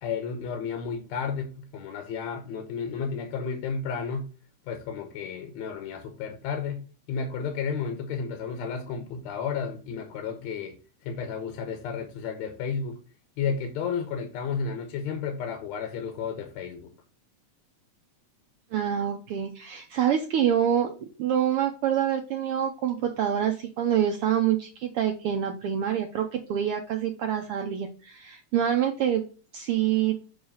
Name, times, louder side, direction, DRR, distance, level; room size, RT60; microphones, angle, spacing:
voice 1, 0.0-4.3 4.7-13.0 13.4-16.9, left 6 dB, 75° left, 2.1 m, -32 dB
voice 2, 18.7-29.2 29.5-30.2, right 9 dB, 80° right, 1.2 m, -26 dB
7.2 x 3.1 x 5.5 m
omnidirectional pair, 3.3 m